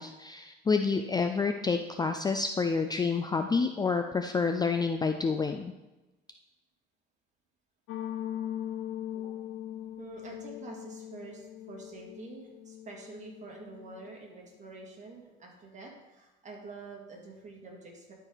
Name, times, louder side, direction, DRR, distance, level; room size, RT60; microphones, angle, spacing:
voice 1, 0.0-5.7, left 4 dB, 20° left, 6 dB, 0.4 m, -28 dB
sound 1, 7.9-14.1, left 11 dB, 80° left, 0.6 m, -40 dB
voice 2, 10.0-18.1, right 3 dB, 35° right, -1 dB, 2.2 m, -47 dB
12.0 x 4.6 x 4.0 m, 1.0 s
cardioid pair, 115°, 21 cm